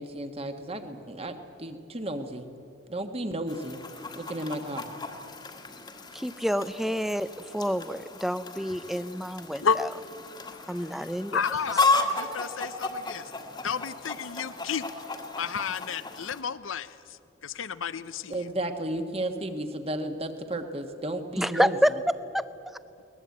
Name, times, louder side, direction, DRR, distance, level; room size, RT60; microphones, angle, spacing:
voice 1, 0.0-2.5 2.9-3.8 4.1-4.8 18.3-21.8, right 1 dB, 30° right, 7 dB, 1.5 m, -33 dB
Chicken rooster, 3.5-16.4, left 3 dB, 20° left, 1.6 m, -34 dB
voice 2, 6.1-7.3 7.5-9.9 10.7-11.4 21.4-21.9 22.3-22.5, equal, ahead, 13 dB, 0.5 m, -28 dB
voice 3, 11.3-13.3 13.6-14.9 15.4-16.9 17.4-18.3, left 6 dB, 80° left, 15 dB, 0.6 m, -31 dB
22.0 x 20.5 x 8.5 m, 2.6 s
head